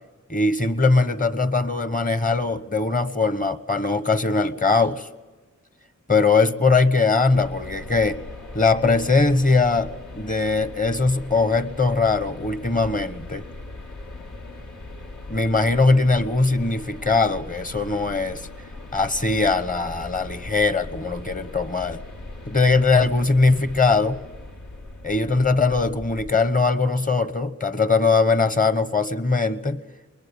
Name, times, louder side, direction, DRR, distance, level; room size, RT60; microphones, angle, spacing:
voice 1, 0.3-5.1 6.1-8.2 8.5-9.9 10.1-13.4 15.3-18.4 18.9-22.0 22.5-24.2 25.0-29.8, left 3 dB, 25° left, 13 dB, 1.1 m, -21 dB
sound 1, 7.3-26.3, left 2 dB, 75° left, 2.4 m, -39 dB
22.0 x 20.5 x 8.7 m, 1.3 s
wide cardioid pair, 70°, 30 cm